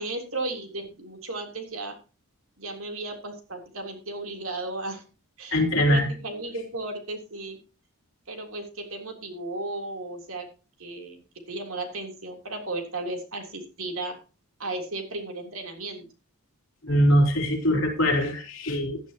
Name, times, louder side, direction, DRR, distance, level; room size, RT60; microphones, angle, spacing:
voice 1, 0.0-1.9 2.6-5.0 5.4-7.6 8.3-10.5 10.8-11.2 11.5-14.2 14.6-16.1, right 2 dB, 65° right, 3 dB, 3.5 m, -34 dB
voice 2, 5.5-6.1 16.8-19.0, equal, 60° left, 2 dB, 3.8 m, -22 dB
16.0 x 11.5 x 3.0 m, 0.33 s
head